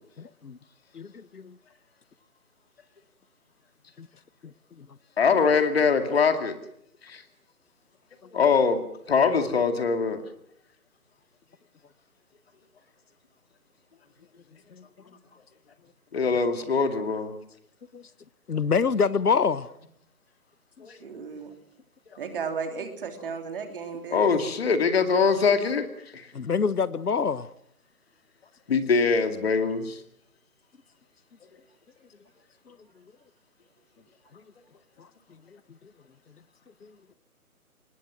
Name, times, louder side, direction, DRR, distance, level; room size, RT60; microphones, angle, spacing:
voice 1, 0.2-0.6 0.9-1.6 4.0-4.1 4.4-5.0 14.7-14.8 17.9-18.1 18.5-19.7 20.8-20.9 26.3-27.5 32.7-32.8 34.3-34.4 35.0-35.4 35.7-35.8 36.8-37.0, left 5 dB, 80° left, 1.1 m, -27 dB
voice 2, 5.2-6.6 7.0-7.2 8.3-10.2 16.1-17.3 20.8-20.9 24.1-25.9 26.1-26.3 28.7-30.0, left 5 dB, 40° left, 2.4 m, -23 dB
voice 3, 21.0-21.5 22.2-24.3, right 5 dB, 35° right, 3.2 m, -34 dB
24.5 x 20.5 x 6.3 m
figure-of-eight pair, 155°, 45 cm